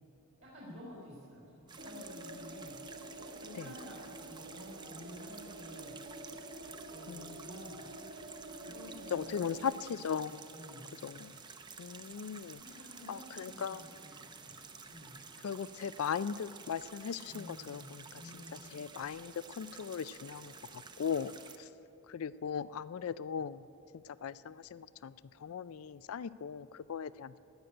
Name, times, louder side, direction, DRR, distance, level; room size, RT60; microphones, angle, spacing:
voice 1, 0.4-2.8 3.4-6.0 6.6-7.9 8.6-10.2 10.5-10.9 12.5-15.2 17.2-18.6, left 1 dB, 85° right, -7 dB, 3.7 m, -52 dB
sound 1, 1.7-21.6, right 5 dB, 20° right, 0.6 m, -51 dB
sound 2, 1.8-9.6, right 1 dB, 40° right, 1.0 m, -49 dB
voice 2, 9.1-10.4 11.0-11.3 11.8-12.6 13.1-13.8 15.4-18.0 18.7-21.3 22.1-23.6 24.0-25.1 25.4-27.4, left 7 dB, 75° left, 17 dB, 0.4 m, -38 dB
16.0 x 6.7 x 9.9 m, 2.7 s
head